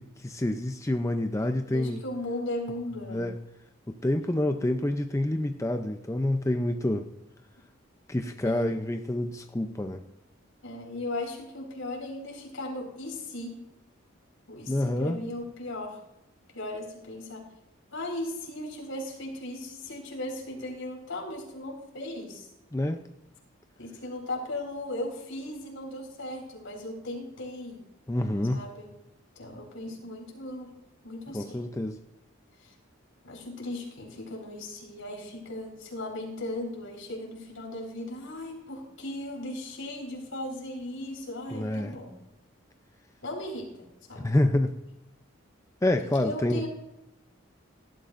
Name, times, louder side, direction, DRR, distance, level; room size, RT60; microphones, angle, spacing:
voice 1, 0.0-2.0 3.1-3.4 3.9-7.1 8.1-10.0 14.7-15.2 22.7-23.0 28.1-28.6 31.3-32.0 41.5-42.0 44.2-44.8 45.8-46.6, left 1 dB, 15° left, 6 dB, 0.5 m, -27 dB
voice 2, 1.7-3.3 8.4-8.7 10.6-13.6 14.5-16.0 16.5-17.5 17.9-22.5 23.8-27.8 28.5-28.9 29.3-30.7 31.0-31.6 32.6-32.7 33.2-42.2 43.2-44.3 46.2-46.7, left 1 dB, 75° left, 1 dB, 4.6 m, -37 dB
18.5 x 13.0 x 2.6 m, 0.87 s
head